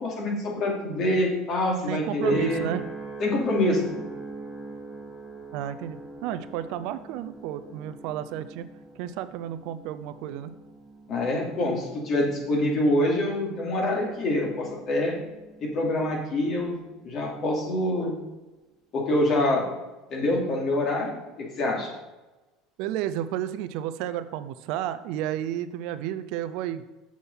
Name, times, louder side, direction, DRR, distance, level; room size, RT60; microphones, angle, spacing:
voice 1, 0.0-2.7 3.2-4.0 11.1-15.1 15.6-16.7 17.0-18.1 18.9-19.7 20.1-21.9, left 1 dB, 50° left, -1 dB, 2.8 m, -25 dB
voice 2, 1.9-2.8 5.5-8.7 9.0-10.5 22.8-26.8, right 11 dB, 70° right, 12 dB, 0.5 m, -32 dB
sound 1, 2.2-16.7 17.2-17.7, right 3 dB, 5° left, 2.0 m, -42 dB
7.2 x 6.2 x 5.6 m, 1.1 s
hypercardioid pair, 85°, 0 cm